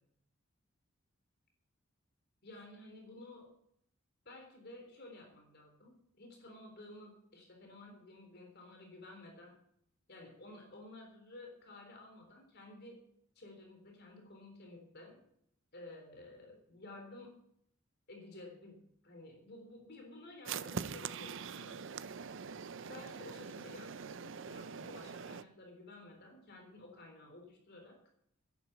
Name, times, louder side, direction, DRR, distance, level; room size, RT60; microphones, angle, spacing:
voice 1, 2.4-3.5 4.3-9.5 10.1-13.0 13.4-15.2 15.7-17.4 18.1-21.9 22.7-28.0, left 2 dB, 55° left, 2 dB, 3.8 m, -53 dB
sound 1, 20.5-25.4, right 6 dB, 65° right, 0.6 m, -43 dB
11.0 x 10.0 x 8.3 m, 0.70 s
head